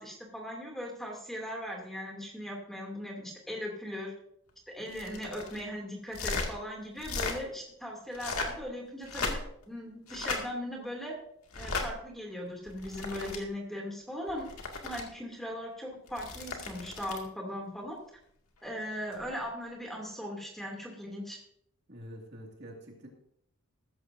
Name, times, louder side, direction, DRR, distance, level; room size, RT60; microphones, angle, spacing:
voice 1, 0.0-4.1 4.7-9.4 9.7-11.1 11.6-14.5 14.8-18.0 18.6-21.4, equal, ahead, -1 dB, 2.6 m, -39 dB
sound 1, 4.9-5.6 6.1-6.5 7.0-7.4 8.1-8.6 9.0-9.6 10.1-10.4 11.5-11.9 12.7-13.4 14.3-15.0 16.1-17.3 19.1-19.3, left 3 dB, 85° left, 2.2 m, -36 dB
voice 2, 21.9-23.1, equal, 50° right, 0 dB, 2.2 m, -46 dB
15.0 x 13.5 x 2.7 m, 0.72 s
head